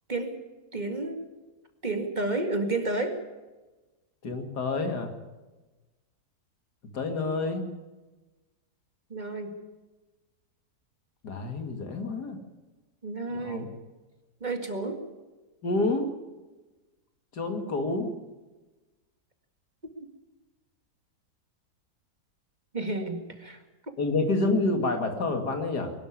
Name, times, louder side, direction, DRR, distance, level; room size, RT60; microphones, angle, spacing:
voice 1, 0.7-1.2 1.8-3.2 9.1-9.5 13.0-13.7 14.4-15.0 22.7-23.6, right 2 dB, 30° right, 5 dB, 2.0 m, -31 dB
voice 2, 4.2-5.1 6.9-7.7 11.2-12.4 13.3-13.7 15.6-16.1 17.3-18.1 24.0-25.9, left 2 dB, 90° left, 6 dB, 2.8 m, -28 dB
22.0 x 12.0 x 9.9 m, 1.2 s
omnidirectional pair, 1.7 m